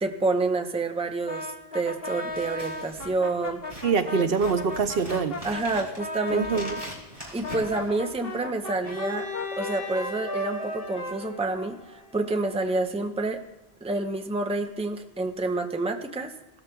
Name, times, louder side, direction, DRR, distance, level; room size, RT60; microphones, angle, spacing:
voice 1, 0.0-3.6 4.2-4.3 5.4-6.6 7.3-9.3 9.6-13.4 13.8-16.3, right 2 dB, 5° right, 5 dB, 0.6 m, -28 dB
Brass instrument, 1.3-6.9 7.4-12.2, left 2 dB, 65° left, 1.7 m, -36 dB
Scissors, 2.3-8.5, equal, 45° right, 3.4 m, -43 dB
voice 2, 3.8-5.4 6.3-6.8, right 5 dB, 65° right, 8 dB, 0.9 m, -24 dB
Bowed string instrument, 8.8-12.7, left 3 dB, 35° left, 3.1 m, -39 dB
17.5 x 13.0 x 2.3 m, 1.0 s
omnidirectional pair, 1.1 m